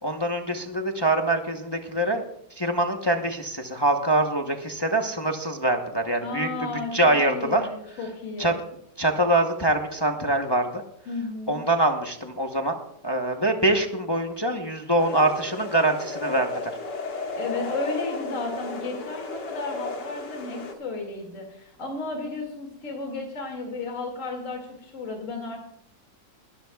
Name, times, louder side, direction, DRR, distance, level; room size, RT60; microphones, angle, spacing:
voice 1, 0.0-2.2 2.6-6.5 6.9-7.6 8.4-8.5 9.0-10.8 11.5-12.7 13.0-16.7, right 1 dB, 25° left, 3 dB, 0.6 m, -24 dB
voice 2, 6.2-8.6 11.1-11.6 17.3-25.6, left 3 dB, 40° left, 1 dB, 2.6 m, -33 dB
sound 1, 15.0-20.7, left 3 dB, 70° left, 2.3 m, -34 dB
21.5 x 13.0 x 2.3 m, 0.73 s
omnidirectional pair, 2.0 m